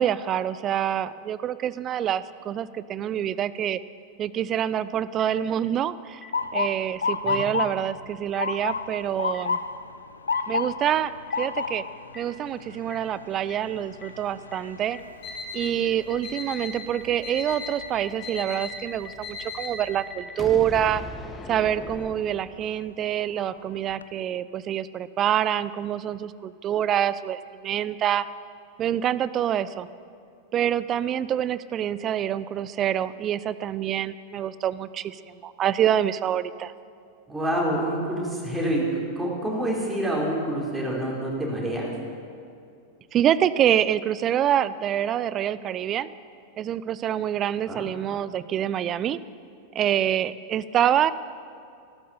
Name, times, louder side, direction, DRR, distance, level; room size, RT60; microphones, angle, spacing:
voice 1, 0.0-3.8 4.2-6.2 6.5-9.6 10.5-11.8 12.2-15.0 15.5-21.0 21.5-28.3 28.8-29.9 30.5-36.7 43.1-46.1 46.6-49.2 49.7-51.1, right 10 dB, 30° right, 16 dB, 0.5 m, -26 dB
Boom, 5.2-5.3 6.2-6.3 7.3-7.4 8.3-8.4 9.3-9.4 10.3-10.4 11.3-11.4 12.1-12.2 12.9-13.0 13.5-13.6 14.0-14.1 14.5-14.6 14.9-15.0 15.3-22.8, left 3 dB, 15° left, 1.3 m, -41 dB
Motor vehicle (road) / Siren, 6.3-18.2 18.7-19.1 19.9-20.2 22.1-22.3 22.8-22.9 23.3-24.0, left 5 dB, 75° left, 0.5 m, -32 dB
Alarm, 15.0-20.0, left 3 dB, 45° left, 4.0 m, -38 dB
voice 2, 37.3-41.9 47.7-47.8, right 1 dB, 5° right, -4 dB, 4.4 m, -27 dB
15.5 x 13.0 x 6.7 m, 2.4 s
figure-of-eight pair, 90°, 0 cm